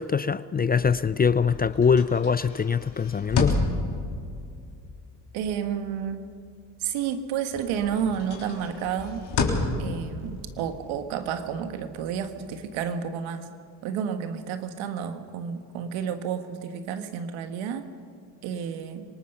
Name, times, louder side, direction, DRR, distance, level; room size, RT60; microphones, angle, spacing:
voice 1, 0.0-3.6, left 6 dB, 20° left, 0.4 m, -23 dB
sound 1, 0.8-7.2 7.5-12.9, left 3 dB, 55° left, 3.7 m, -33 dB
voice 2, 5.3-6.3 6.8-9.3 9.8-13.5 13.8-17.9 18.4-19.0, right 8 dB, 80° right, 1.7 m, -31 dB
26.5 x 19.0 x 5.6 m
supercardioid pair, 65°, 46 cm